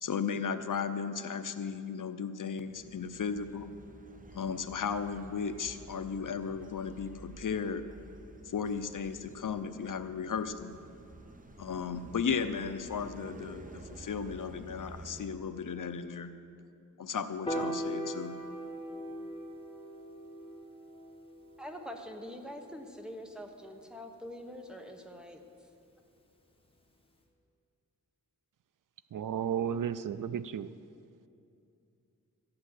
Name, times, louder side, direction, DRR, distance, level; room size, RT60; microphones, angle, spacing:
voice 1, 0.0-3.7 4.3-7.8 8.5-10.7 11.6-16.3 17.0-18.4, left 6 dB, 70° left, 10 dB, 0.7 m, -35 dB
sound 1, 2.6-15.3, right 2 dB, 25° right, 0.8 m, -51 dB
Piano, 17.5-23.8, right 1 dB, 15° left, 1.3 m, -40 dB
voice 2, 21.6-25.4, equal, ahead, 3 dB, 1.2 m, -44 dB
voice 3, 29.1-30.7, right 8 dB, 70° right, 14 dB, 0.5 m, -33 dB
13.0 x 8.8 x 7.9 m, 2.6 s
wide cardioid pair, 105°, 33 cm